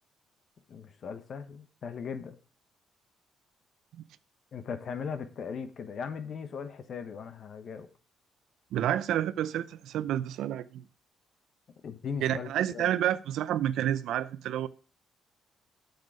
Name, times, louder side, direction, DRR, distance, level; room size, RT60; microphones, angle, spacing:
voice 1, 0.7-2.4 4.5-7.9 11.8-12.9, left 6 dB, 60° left, 1.2 m, -38 dB
voice 2, 8.7-10.8 12.2-14.7, right 11 dB, 80° right, 0.5 m, -29 dB
8.2 x 6.7 x 5.0 m
cardioid pair, 90°, 0 cm